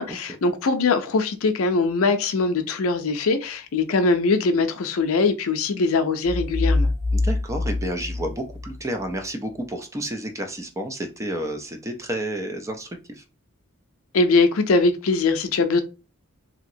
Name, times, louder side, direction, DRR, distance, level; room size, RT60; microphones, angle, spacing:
voice 1, 0.0-6.9 14.1-15.8, left 3 dB, 80° left, 0.5 m, -21 dB
sound 1, 6.2-9.1, left 2 dB, 35° left, 0.7 m, -24 dB
voice 2, 7.1-13.2, right 1 dB, 15° right, 0.4 m, -30 dB
2.9 x 2.8 x 2.6 m
head